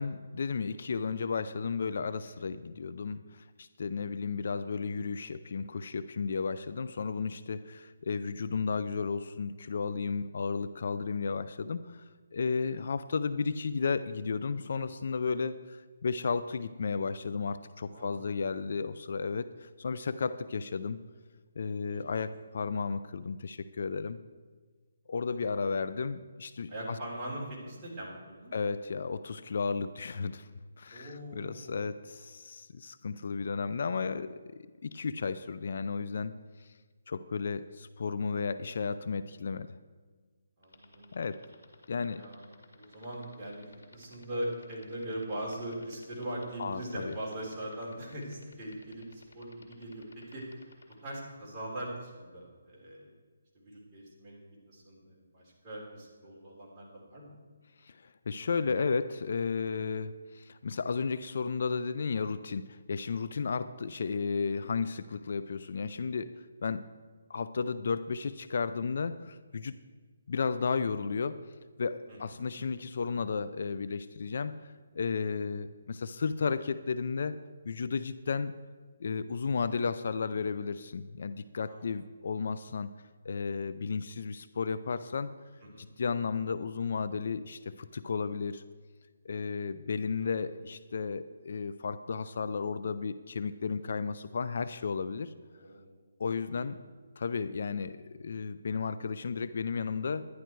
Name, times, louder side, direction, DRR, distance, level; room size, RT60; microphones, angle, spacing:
voice 1, 0.0-12.0 12.3-21.0 21.6-24.2 25.1-27.0 28.5-30.5 30.8-36.7 37.1-39.7 41.1-41.5 41.9-42.3 46.6-47.1 57.8-66.8 67.3-69.8 70.3-71.5 71.8-78.5 79.0-82.9 83.2-85.3 85.8-88.6 89.2-95.3 96.2-96.8 97.2-100.2, left 5 dB, 60° left, 13 dB, 0.5 m, -33 dB
voice 2, 17.9-18.4 21.9-22.0 26.7-28.5 30.9-31.8 40.6-41.1 42.1-43.7 43.9-50.5 51.0-53.1 53.5-54.4 54.7-57.4 72.1-72.4 81.6-81.9 85.6-85.9 90.2-90.5 95.5-95.9 96.5-96.6, right 1 dB, 20° right, -6 dB, 3.7 m, -41 dB
sound 1, 40.6-50.9, left 3 dB, 85° left, 2.3 m, -55 dB
11.0 x 11.0 x 4.6 m, 1.5 s
hypercardioid pair, 160°, 0 cm